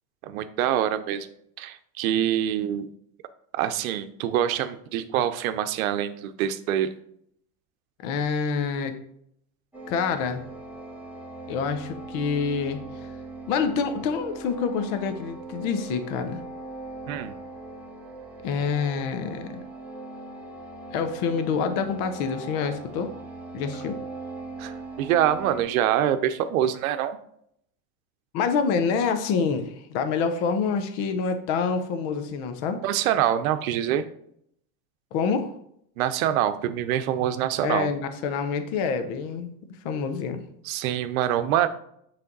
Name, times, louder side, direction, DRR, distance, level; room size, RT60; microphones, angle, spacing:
voice 1, 0.2-1.3 1.6-2.9 3.5-6.9 17.1-17.4 24.6-27.2 32.8-34.0 36.0-37.9 40.6-41.7, right 11 dB, 90° right, 11 dB, 0.7 m, -25 dB
voice 2, 8.0-8.9 9.9-10.4 11.5-12.8 13.5-16.4 18.4-19.6 20.9-23.1 23.5-24.0 28.3-32.8 35.1-35.5 37.6-39.5 39.8-40.4, left 5 dB, 45° left, 8 dB, 0.7 m, -27 dB
sound 1, 9.7-25.6, right 2 dB, 5° right, 0.9 m, -40 dB
8.4 x 3.3 x 3.9 m, 0.70 s
supercardioid pair, 170°, 40 cm